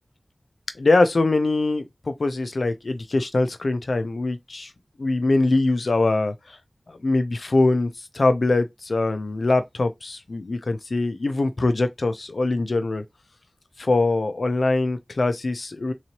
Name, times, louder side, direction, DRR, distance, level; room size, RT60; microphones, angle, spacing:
voice 1, 0.8-4.7 5.0-6.6 6.9-13.0 13.8-15.9, left 2 dB, 80° left, 0.5 m, -23 dB
3.9 x 3.0 x 2.8 m
wide cardioid pair, 40°, 0 cm